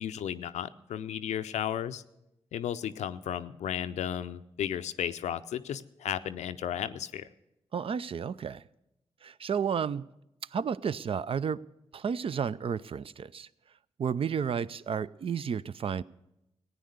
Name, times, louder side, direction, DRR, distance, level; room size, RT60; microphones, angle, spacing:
voice 1, 0.0-2.0 2.5-7.3, left 9 dB, 80° left, 0.5 m, -34 dB
voice 2, 7.7-8.6 9.2-10.1 10.5-11.6 11.9-13.5 14.0-16.0, right 7 dB, 55° right, 0.4 m, -32 dB
15.5 x 9.3 x 6.5 m
supercardioid pair, 40°, 12 cm